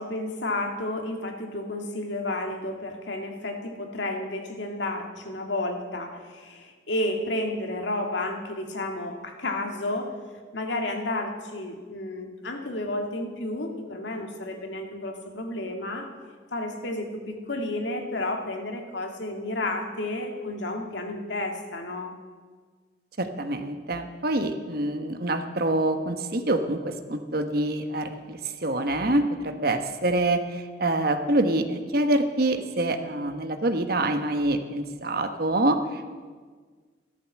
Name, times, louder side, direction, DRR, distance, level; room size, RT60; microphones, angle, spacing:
voice 1, 0.0-10.1 10.5-16.1 16.5-22.1, left 1 dB, 75° left, 3 dB, 2.1 m, -31 dB
voice 2, 23.2-36.1, right 1 dB, 55° right, 8 dB, 1.2 m, -26 dB
14.5 x 12.5 x 7.5 m, 1.5 s
head